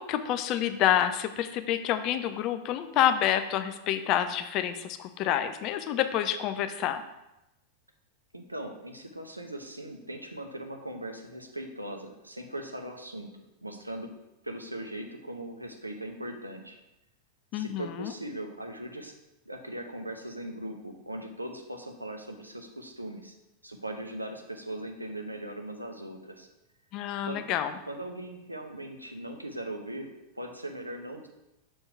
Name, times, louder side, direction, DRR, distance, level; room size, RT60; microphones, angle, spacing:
voice 1, 0.0-7.0 17.5-18.1 26.9-27.7, left 11 dB, 40° left, 9 dB, 0.5 m, -28 dB
voice 2, 8.3-13.3 13.6-14.1 14.4-16.8 17.5-19.2 19.5-23.4 23.6-26.5 27.2-27.5 27.9-30.1 30.3-31.3, right 1 dB, 85° right, 4 dB, 0.7 m, -39 dB
6.6 x 4.4 x 4.6 m, 0.93 s
figure-of-eight pair, 90°, 0 cm